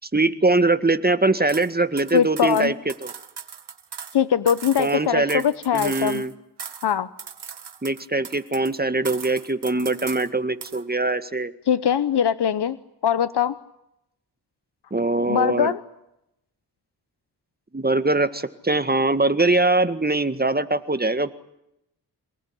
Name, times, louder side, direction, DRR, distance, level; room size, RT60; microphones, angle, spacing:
voice 1, 0.1-3.1 4.8-5.4 5.7-6.3 7.8-11.5 14.9-15.8 17.7-21.3, right 2 dB, 25° right, 11 dB, 1.9 m, -22 dB
sound 1, 1.5-1.7 2.0-4.2 4.5-6.3 6.6-6.9 7.2-8.8 9.0-10.3 10.6-10.8, right 7 dB, 80° right, 2.1 m, -38 dB
voice 2, 2.1-2.7 4.1-6.2 6.8-7.1 11.7-12.8 13.0-13.6 15.3-15.8, left 8 dB, 85° left, 14 dB, 0.9 m, -21 dB
27.5 x 19.0 x 10.0 m, 0.83 s
cardioid pair, 60°, 40 cm